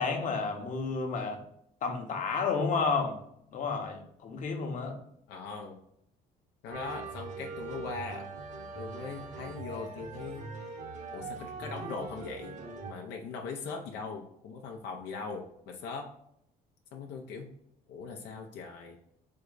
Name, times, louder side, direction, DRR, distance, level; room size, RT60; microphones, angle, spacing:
voice 1, 0.0-1.4 1.8-3.2 3.5-5.0, left 4 dB, 50° left, 3 dB, 1.0 m, -31 dB
voice 2, 5.3-5.8 6.6-8.3 8.7-10.5 11.1-12.6 12.9-16.1 16.9-17.5 17.9-19.0, left 4 dB, 85° left, 2 dB, 0.7 m, -40 dB
sound 1, 6.7-12.9, right 3 dB, 45° right, 0.9 m, -42 dB
3.8 x 3.4 x 3.8 m, 0.72 s
cardioid pair, 110°, 17 cm